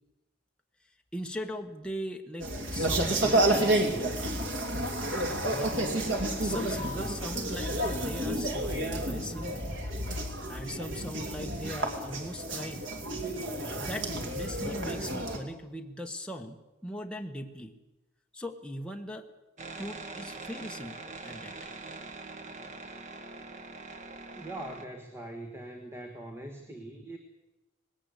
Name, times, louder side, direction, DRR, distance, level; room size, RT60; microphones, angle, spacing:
voice 1, 1.1-4.2 5.5-5.9 6.4-9.7 10.5-12.9 13.8-17.7 18.3-19.3 19.8-21.7, equal, 5° left, 2 dB, 1.2 m, -40 dB
sound 1, 2.4-15.4, right 1 dB, 75° right, 2.9 m, -30 dB
sound 2, 19.6-24.8, right 3 dB, 40° right, 1.5 m, -43 dB
voice 2, 24.4-27.2, right 1 dB, 15° right, 4 dB, 1.5 m, -42 dB
19.5 x 17.5 x 8.2 m, 1.0 s
head